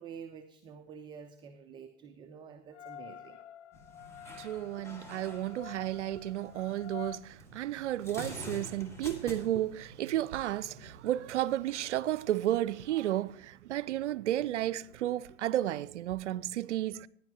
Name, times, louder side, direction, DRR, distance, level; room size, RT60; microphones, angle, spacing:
voice 1, 0.0-3.4, right 7 dB, 15° right, 0.4 m, -48 dB
sound 1, 2.7-7.2, left 9 dB, 75° left, 0.6 m, -49 dB
sound 2, 3.7-11.8, equal, 10° left, 1.6 m, -48 dB
voice 2, 4.4-17.1, right 13 dB, 80° right, 0.5 m, -32 dB
15.5 x 10.5 x 2.9 m
hypercardioid pair, 115°, 35 cm